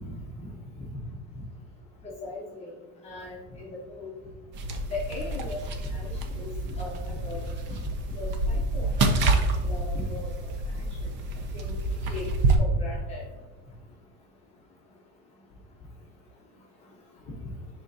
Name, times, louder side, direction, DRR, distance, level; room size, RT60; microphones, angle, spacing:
voice 1, 2.0-2.7 3.0-4.1 4.9-5.6 5.9-7.5 8.1-10.3 11.5-11.7 12.1-12.3 12.6-13.2, left 2 dB, 20° left, -6 dB, 1.0 m, -38 dB
sound 1, 4.5-12.6, right 2 dB, 30° right, 0.5 m, -28 dB
10.5 x 3.7 x 2.7 m, 1.3 s
cardioid pair, 175°, 35 cm